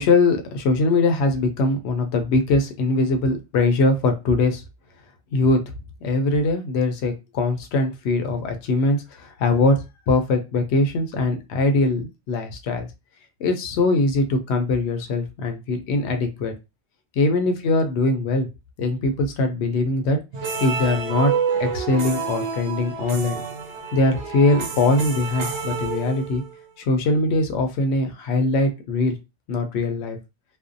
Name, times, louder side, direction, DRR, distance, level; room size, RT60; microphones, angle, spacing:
voice 1, 0.0-4.6 5.3-5.6 6.0-9.8 10.1-12.9 13.4-16.5 17.2-18.5 18.8-20.2 20.6-21.3 21.6-23.4 23.9-26.4 26.8-29.2 29.5-30.2, left 2 dB, 75° left, 6 dB, 0.8 m, -21 dB
sound 1, 20.3-26.6, right 6 dB, 85° right, 0.9 m, -28 dB
2.5 x 2.0 x 2.5 m, 0.26 s
omnidirectional pair, 1.1 m